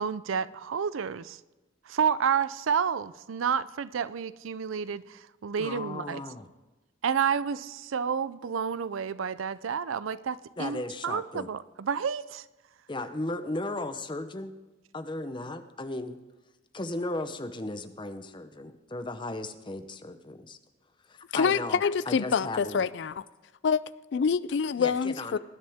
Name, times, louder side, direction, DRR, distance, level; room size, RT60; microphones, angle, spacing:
voice 1, 0.0-1.4 1.8-6.2 7.0-12.5, right 7 dB, 90° right, 0.5 m, -30 dB
voice 2, 5.6-6.5 10.6-11.5 12.9-14.5 14.9-16.2 16.7-20.6 21.0-22.8 24.8-25.4, left 2 dB, 25° left, 0.7 m, -36 dB
voice 3, 21.3-23.2 23.6-23.8 24.1-25.4, left 6 dB, 60° left, 0.4 m, -26 dB
20.0 x 10.5 x 3.5 m
head